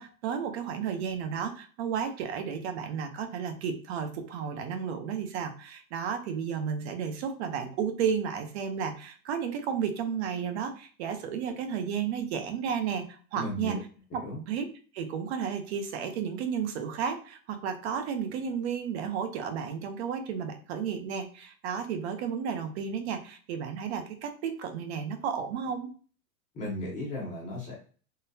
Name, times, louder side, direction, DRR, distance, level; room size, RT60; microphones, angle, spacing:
voice 1, 0.0-13.0 13.3-13.8 14.1-14.7 14.9-25.9, right 7 dB, 50° right, 7 dB, 0.6 m, -33 dB
voice 2, 13.3-13.8 14.2-14.4 26.5-27.8, left 1 dB, 20° left, -4 dB, 0.6 m, -35 dB
3.8 x 2.1 x 2.6 m, 0.40 s
supercardioid pair, 155°, 41 cm